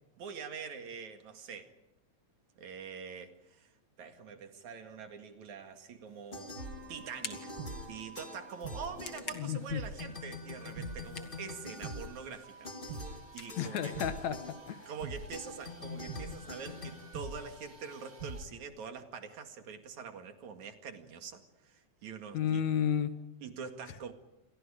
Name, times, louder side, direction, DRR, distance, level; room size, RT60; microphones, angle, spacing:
voice 1, 0.2-1.7 2.6-3.7 4.0-6.5 6.9-7.5 7.9-13.9 14.9-22.6 23.4-24.1, right 6 dB, 75° right, 6 dB, 3.4 m, -45 dB
sound 1, 6.1-15.3, left 5 dB, 45° left, 2.6 m, -51 dB
sound 2, 6.3-7.1 7.3-9.7 10.0-17.8, left 3 dB, 20° left, 2.1 m, -46 dB
sound 3, 6.6-18.5, right 3 dB, 35° right, 1.8 m, -46 dB
voice 2, 9.3-9.8 13.6-14.9 22.3-23.3, left 9 dB, 70° left, 10 dB, 2.6 m, -32 dB
29.5 x 27.0 x 5.1 m, 0.92 s
omnidirectional pair, 3.4 m